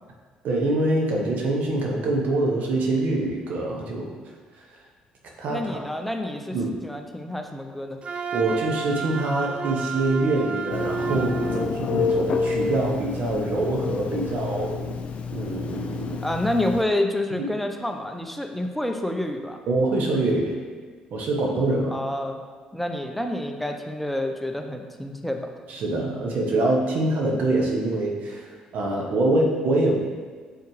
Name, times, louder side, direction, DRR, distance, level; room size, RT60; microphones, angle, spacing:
voice 1, 0.4-4.1 5.4-5.8 6.5-6.7 8.3-15.0 15.3-16.2 17.4-17.5 19.7-20.6 21.1-21.9 25.7-30.0, right 2 dB, 65° right, 0 dB, 1.1 m, -25 dB
voice 2, 5.5-6.6 6.8-8.0 16.2-19.6 21.9-22.4 22.7-25.5, left 1 dB, 5° left, 4 dB, 0.7 m, -28 dB
Wind instrument woodwind instrument, 8.0-11.7, right 5 dB, 40° right, 0.4 m, -31 dB
Telephone, 10.7-16.8, left 5 dB, 50° left, 0.5 m, -29 dB
7.0 x 4.5 x 3.2 m, 1.5 s
hypercardioid pair, 55°, 3 cm